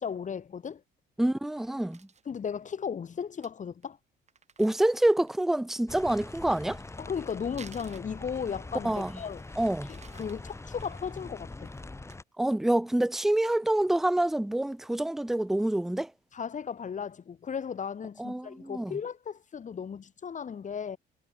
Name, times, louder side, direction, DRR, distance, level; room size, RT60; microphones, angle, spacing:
voice 1, 0.0-0.8 2.3-4.0 7.0-9.4 9.9-11.7 16.3-21.0, left 7 dB, 40° left, 3.7 m, -36 dB
voice 2, 1.2-2.0 4.6-6.8 8.8-9.1 9.6-9.9 12.4-16.1 18.2-19.0, right 1 dB, ahead, 0.3 m, -27 dB
Crumpling crinkling, 1.5-2.3 2.8-2.9 3.2-3.3 3.4-3.5 3.8-3.9 4.3-5.5 6.7-8.6 9.0-12.2 12.6-12.8 13.1-14.4 14.8-14.9 15.3-15.7, right 6 dB, 35° right, 7.6 m, -56 dB
sound 1, 5.9-12.2, left 2 dB, 15° left, 1.5 m, -43 dB
supercardioid pair, 85°, 19 cm